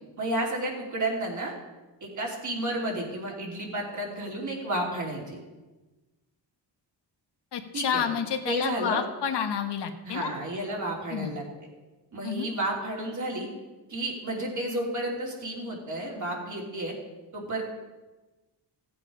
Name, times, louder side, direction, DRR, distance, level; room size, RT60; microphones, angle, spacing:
voice 1, 0.2-1.5 2.0-5.4 7.7-8.0 8.4-9.0 10.0-11.4 12.1-13.5 13.9-16.9 17.3-17.6, right 1 dB, 45° right, -1 dB, 3.1 m, -31 dB
voice 2, 7.5-10.3 11.1-11.3 12.2-12.5, left 8 dB, 70° left, 6 dB, 1.3 m, -29 dB
15.5 x 8.5 x 5.1 m, 1.2 s
wide cardioid pair, 135°, 43 cm